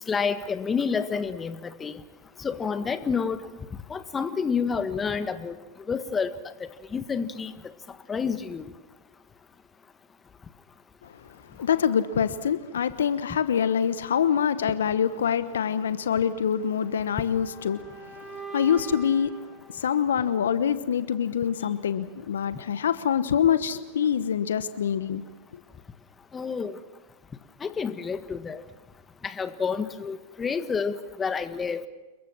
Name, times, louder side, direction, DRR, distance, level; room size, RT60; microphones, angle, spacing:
voice 1, 0.1-2.0 2.4-3.4 3.9-5.6 5.9-7.5 8.1-8.7 26.3-26.7 27.6-28.6 29.2-31.8, left 5 dB, 20° left, 1.6 m, -29 dB
voice 2, 11.0-25.2 25.5-25.6, left 8 dB, 75° left, 1.1 m, -25 dB
sound 1, 16.6-20.6, right 4 dB, 10° right, 5.0 m, -44 dB
29.0 x 22.0 x 6.2 m
hypercardioid pair, 100°, 0 cm